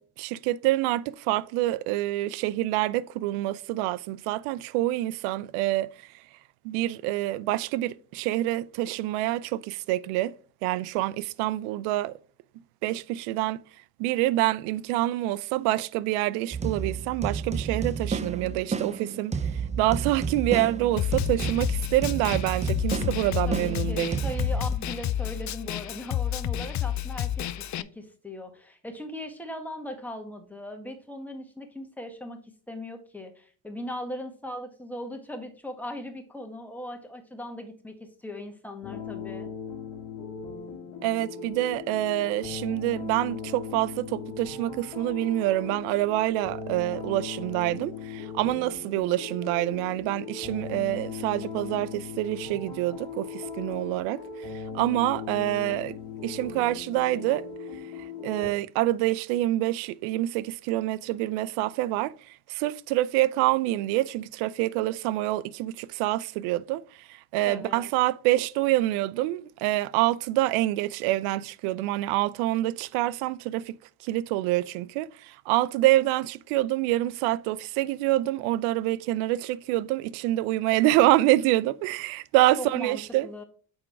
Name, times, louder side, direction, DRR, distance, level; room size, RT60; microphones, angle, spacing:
voice 1, 0.0-5.9 6.6-10.3 10.6-12.1 12.8-13.6 14.0-19.4 19.8-24.2 41.0-54.2 54.5-56.0 56.2-57.4 58.0-73.7 74.0-83.3, right 16 dB, 75° right, 0.6 m, -26 dB
sound 1, 16.5-24.7, right 5 dB, 15° right, 0.5 m, -31 dB
Snare drum, 21.0-27.8, left 11 dB, 40° left, 0.4 m, -30 dB
voice 2, 23.5-39.5 67.4-67.9 82.6-83.4, left 1 dB, 5° left, 1.5 m, -39 dB
sound 2, 38.8-58.5, left 6 dB, 60° left, 1.8 m, -38 dB
6.3 x 4.4 x 4.6 m
hypercardioid pair, 65°, 50 cm